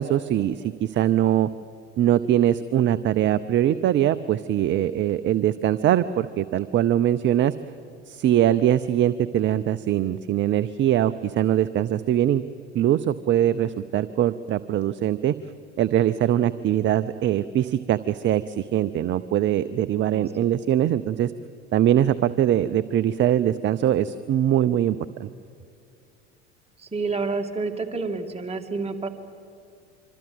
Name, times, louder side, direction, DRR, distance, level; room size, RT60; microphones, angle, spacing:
voice 1, 0.0-1.5 2.0-7.5 8.1-12.4 12.7-15.4 15.8-21.3 21.7-25.3, right 11 dB, 30° right, 13 dB, 0.7 m, -22 dB
voice 2, 26.8-29.1, right 3 dB, 15° right, 3 dB, 2.6 m, -29 dB
25.5 x 25.0 x 8.0 m, 2.3 s
figure-of-eight pair, 75°, 35 cm